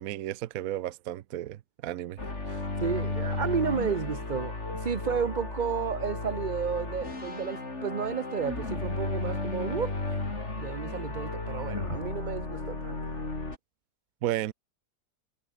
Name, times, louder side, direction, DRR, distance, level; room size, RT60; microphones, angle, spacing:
voice 1, 0.0-2.2 2.5-2.6 14.2-14.5, right 13 dB, 65° right, 1.0 m, -33 dB
sound 1, 2.2-13.6, left 2 dB, 40° left, 4.1 m, -34 dB
voice 2, 2.8-10.2 10.6-13.2, right 6 dB, 35° right, 0.9 m, -32 dB
omnidirectional pair, 1.8 m